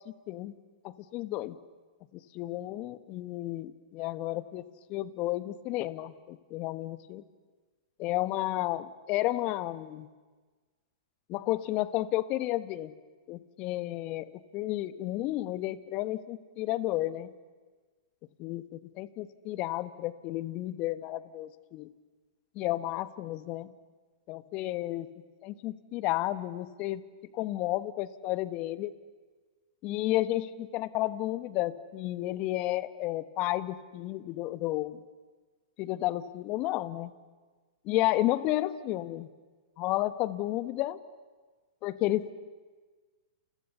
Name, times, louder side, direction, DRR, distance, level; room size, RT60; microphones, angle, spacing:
voice 1, 0.8-1.6 2.3-4.6 4.9-7.2 8.0-10.1 11.3-12.9 13.3-17.3 18.4-21.9 22.5-23.7 24.3-25.1 25.4-27.0 27.3-28.9 29.8-35.0 35.8-37.1 37.8-39.3 39.8-41.0 41.8-42.4, left 16 dB, 40° left, 13 dB, 1.3 m, -32 dB
29.0 x 28.5 x 7.0 m, 1.4 s
hypercardioid pair, 115°, 3 cm